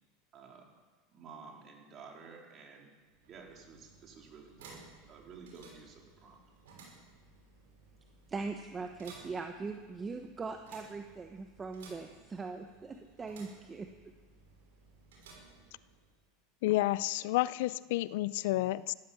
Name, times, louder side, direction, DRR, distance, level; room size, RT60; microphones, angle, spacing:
voice 1, 0.3-0.8 1.1-3.0 3.2-4.8 5.1-6.4, right 5 dB, 40° right, 0 dB, 3.7 m, -52 dB
sound 1, 3.0-16.3, right 3 dB, 85° right, 5.9 m, -58 dB
voice 2, 8.3-13.9, right 4 dB, 20° right, 5 dB, 1.1 m, -41 dB
voice 3, 16.6-18.9, left 17 dB, 70° left, 19 dB, 0.4 m, -30 dB
14.5 x 13.0 x 7.1 m, 1.3 s
supercardioid pair, 115°, 0 cm